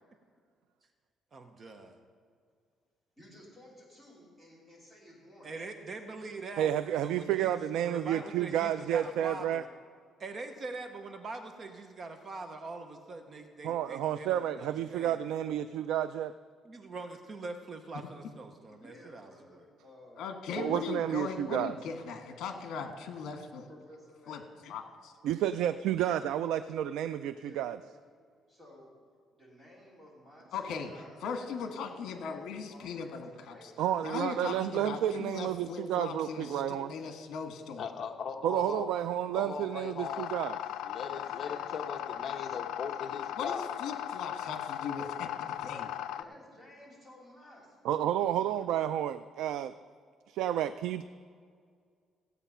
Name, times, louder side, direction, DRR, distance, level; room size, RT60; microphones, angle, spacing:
voice 1, 1.3-1.9 5.4-6.8 7.0-9.7 10.2-15.2 16.6-19.6, right 3 dB, 30° right, 6 dB, 0.8 m, -43 dB
voice 2, 3.2-5.5 18.7-20.4 20.7-21.7 23.7-24.4 27.3-27.7 28.5-28.9 29.4-34.9 41.0-42.7 46.1-47.8, left 1 dB, 10° right, -4 dB, 3.3 m, -55 dB
voice 3, 6.6-9.6 13.6-16.3 20.6-21.7 25.2-27.8 33.8-36.9 38.4-40.6 47.8-49.7 50.3-51.0, right 11 dB, 85° right, 12 dB, 0.3 m, -31 dB
voice 4, 20.2-23.7 24.3-25.1 30.5-30.9 31.2-33.5 34.0-37.9 43.4-45.9, left 5 dB, 65° left, 5 dB, 1.5 m, -39 dB
voice 5, 37.8-38.9 39.3-40.3 40.8-43.8, left 6 dB, 40° left, 3 dB, 1.0 m, -39 dB
sound 1, 40.0-46.2, left 11 dB, 90° left, 0.4 m, -38 dB
16.0 x 8.2 x 5.6 m, 2.1 s
cardioid pair, 175°, 0 cm